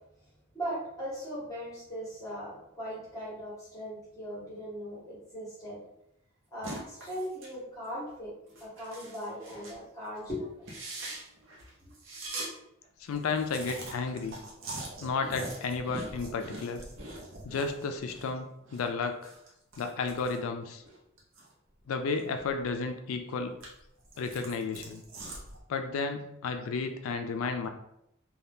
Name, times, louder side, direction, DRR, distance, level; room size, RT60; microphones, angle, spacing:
voice 1, 0.5-5.8 6.5-10.5, equal, 15° left, -8 dB, 1.2 m, -39 dB
sound 1, 6.6-7.6 7.8-8.0 8.5-9.8 10.2-10.3 10.6-12.5 12.8-12.9 13.1-18.3 18.6-21.5 21.9-22.9 23.3-25.6, right 2 dB, 65° right, 0.7 m, -43 dB
voice 2, 13.0-14.4 15.0-16.8 17.4-19.2 19.8-20.8 21.9-23.5 24.2-25.0 25.7-27.7, left 4 dB, 75° left, 6 dB, 0.4 m, -32 dB
2.7 x 2.3 x 3.5 m, 0.78 s
head